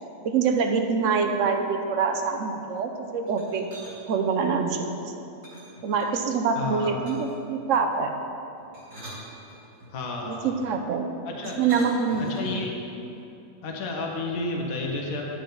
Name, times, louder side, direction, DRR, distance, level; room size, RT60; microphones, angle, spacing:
voice 1, 0.2-3.7 4.1-5.1 5.8-8.1 10.3-11.1 11.6-12.3, right 5 dB, 65° right, 5 dB, 0.9 m, -25 dB
sound 1, 3.3-4.0 5.4-6.4 7.1-7.5 8.6-9.9 11.4-12.8, right 1 dB, 80° right, 2.8 m, -43 dB
voice 2, 6.6-6.9 9.9-10.5 11.2-11.6 12.2-12.7 13.6-15.2, left 2 dB, 65° left, 0 dB, 1.4 m, -31 dB
10.5 x 6.6 x 3.9 m, 2.8 s
omnidirectional pair, 1.6 m